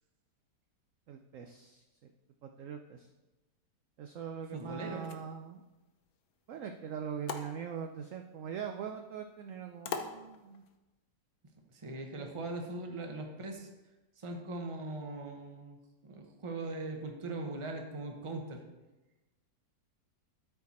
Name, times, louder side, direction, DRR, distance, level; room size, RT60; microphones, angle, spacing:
voice 1, 1.1-1.8 2.4-3.1 4.0-5.6 6.5-10.6 12.2-12.3, right 7 dB, 70° right, 5 dB, 0.7 m, -42 dB
voice 2, 4.5-5.1 11.7-13.7 14.2-18.6, right 2 dB, 25° right, 2 dB, 0.7 m, -40 dB
sound 1, 4.8-10.8, left 6 dB, 65° left, 1.1 m, -46 dB
12.5 x 4.6 x 4.1 m, 1.1 s
omnidirectional pair, 1.8 m